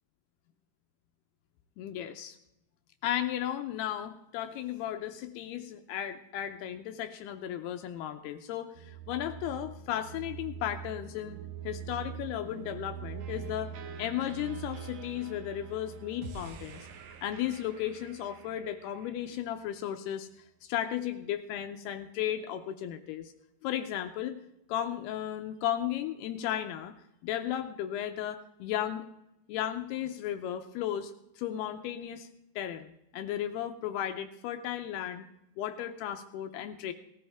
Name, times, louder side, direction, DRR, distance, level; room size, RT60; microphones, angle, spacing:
voice 1, 1.8-2.4 3.0-11.4 11.6-13.7 14.0-16.9 17.2-20.3 20.6-23.3 23.6-24.4 24.7-26.9 27.2-29.1 29.5-32.3 32.6-35.2 35.6-36.9, left 11 dB, 80° left, 8 dB, 2.4 m, -35 dB
sound 1, 8.8-18.6, right 8 dB, 85° right, 3.5 m, -44 dB
sound 2, 13.2-19.4, right 4 dB, 65° right, 2.5 m, -50 dB
18.0 x 14.0 x 3.5 m, 0.86 s
omnidirectional pair, 5.3 m